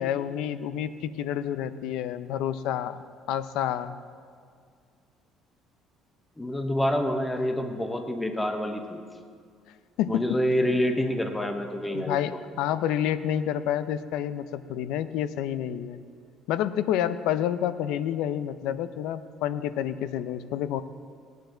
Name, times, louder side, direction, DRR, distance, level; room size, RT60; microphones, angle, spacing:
voice 1, 0.0-3.0 3.3-3.9 10.0-10.3 11.9-16.0 16.5-20.8, left 10 dB, 80° left, 13 dB, 0.5 m, -29 dB
voice 2, 6.4-9.0 10.1-12.2, equal, 10° left, 4 dB, 0.8 m, -27 dB
17.5 x 9.3 x 3.9 m, 2.1 s
cardioid pair, 145°, 0 cm